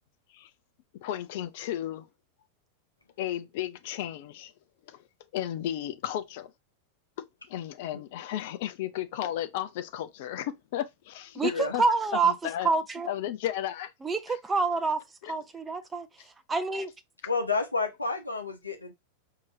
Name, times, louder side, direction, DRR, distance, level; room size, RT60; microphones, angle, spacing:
voice 1, 1.0-2.1 3.2-4.5 4.9-5.0 5.3-6.5 7.5-11.8 12.2-12.7 13.0-13.9 14.3-14.4 15.2-15.3, left 12 dB, 50° left, 0.6 m, -34 dB
voice 2, 11.3-12.3 12.6-13.1 14.0-16.1 16.5-16.9, right 4 dB, 15° right, 0.6 m, -27 dB
voice 3, 17.3-18.9, left 4 dB, 80° left, 0.9 m, -30 dB
4.7 x 2.9 x 2.6 m
figure-of-eight pair, 90°, 0 cm